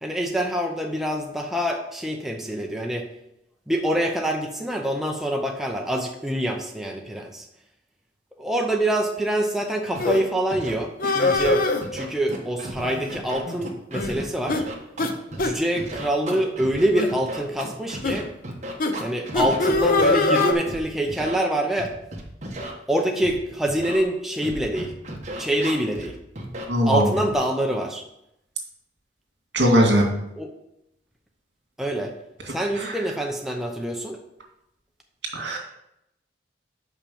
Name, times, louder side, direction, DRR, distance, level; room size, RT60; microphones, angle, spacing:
voice 1, 0.0-3.1 3.7-7.4 8.4-14.6 15.4-18.3 19.0-21.9 22.9-24.9 25.4-26.2 26.8-28.0 30.3-30.5 31.8-32.1 32.5-34.2, right 1 dB, ahead, 1 dB, 0.7 m, -25 dB
Scratching (performance technique), 9.9-10.0 10.5-10.7 11.0-11.5 11.8-12.8 13.1-15.4 15.8-20.8 21.1-21.3 21.8-22.7 23.2-23.3 23.7-24.0 24.4-26.1 26.4-26.6 27.2-27.3, right 1 dB, 40° right, 1.3 m, -34 dB
sound 1, 10.0-10.2 11.0-11.8 12.8-13.2 13.5-13.6 13.9-14.2 14.5-14.6 15.0-15.1 15.4-15.5 16.2-16.4 16.9-17.1 18.0-18.2 18.8-18.9 19.3-20.5, left 2 dB, 50° left, 0.8 m, -22 dB
voice 2, 26.7-27.1 29.5-30.0 32.8-32.9 35.3-35.6, equal, 70° right, 1 dB, 2.1 m, -19 dB
5.8 x 5.7 x 6.9 m, 0.82 s
head